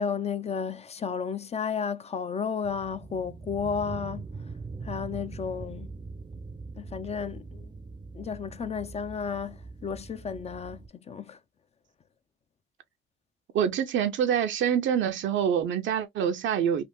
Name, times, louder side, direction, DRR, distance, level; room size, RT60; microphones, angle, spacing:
voice 1, 0.0-4.2 4.8-5.9 6.8-7.7 8.1-11.4, left 6 dB, 35° left, 0.4 m, -33 dB
sound 1, 2.6-10.9, right 4 dB, 20° right, 0.5 m, -42 dB
voice 2, 13.5-16.8, right 8 dB, 70° right, 0.5 m, -26 dB
3.4 x 2.5 x 2.9 m
cardioid pair, 90°, 20 cm